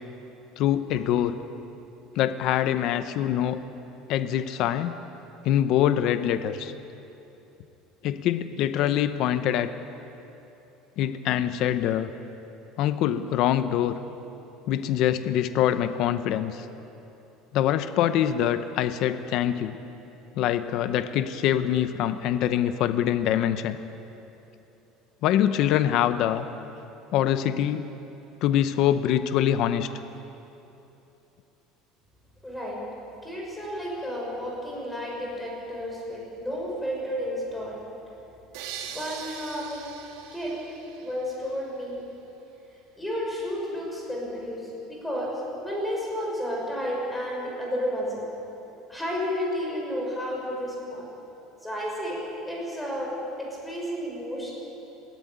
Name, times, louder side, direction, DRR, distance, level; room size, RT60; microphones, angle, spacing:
voice 1, 0.6-1.4 2.1-3.6 4.1-5.0 5.4-6.7 8.0-9.7 11.0-12.1 12.8-14.0 14.7-16.7 17.5-19.8 20.3-23.8 25.2-26.5 27.1-27.9 28.4-29.9, left 11 dB, 50° left, 11 dB, 0.8 m, -24 dB
voice 2, 32.4-32.8 33.2-37.8 38.8-39.8 40.3-40.6 41.0-42.0 43.0-48.2 48.9-51.1 51.6-52.2 52.4-53.1 53.4-54.5, equal, 5° left, -3 dB, 5.6 m, -32 dB
sound 1, 38.5-41.6, right 8 dB, 75° right, 2.0 m, -41 dB
20.5 x 15.0 x 9.3 m, 3.0 s
cardioid pair, 160°, 0 cm